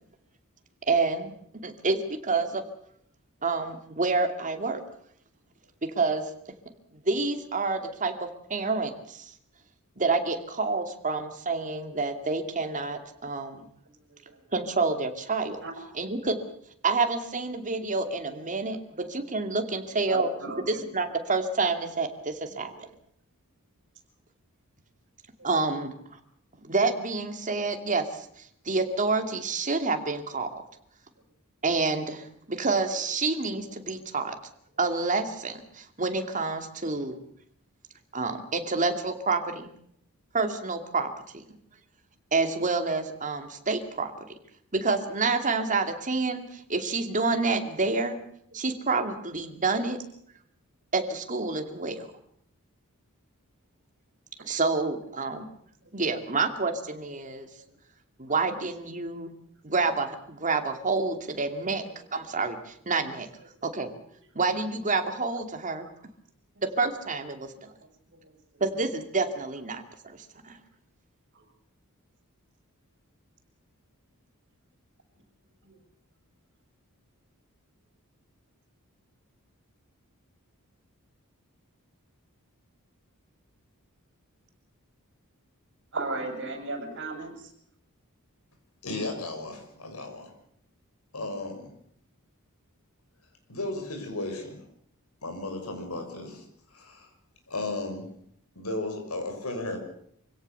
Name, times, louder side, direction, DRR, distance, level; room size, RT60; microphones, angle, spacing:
voice 1, 0.9-1.3 1.6-2.6 3.4-4.8 5.8-6.3 7.1-9.3 10.0-13.6 14.5-15.6 15.9-16.4 16.8-20.3 20.7-22.7 25.4-25.9 26.6-28.3 28.7-30.6 31.6-34.3 34.8-37.2 38.1-39.7 40.3-41.4 42.3-44.3 44.7-48.2 48.5-50.0 50.9-52.1 54.4-55.5 55.9-57.5 58.2-59.3 59.6-61.8 62.1-63.3 63.6-63.9 64.3-65.9 66.6-67.5 68.6-70.2 70.4-70.6, right 3 dB, 35° right, 2.6 m, -28 dB
voice 2, 20.1-20.8 22.5-22.6 25.4-25.5 63.8-63.9 85.9-87.3, right 2 dB, 55° right, 6.8 m, -33 dB
voice 3, 88.8-90.3 91.1-91.7 93.5-94.6 95.2-96.4 96.7-97.1 97.5-98.1 98.5-99.8, left 2 dB, 75° left, 6.3 m, -34 dB
26.0 x 17.0 x 6.9 m
head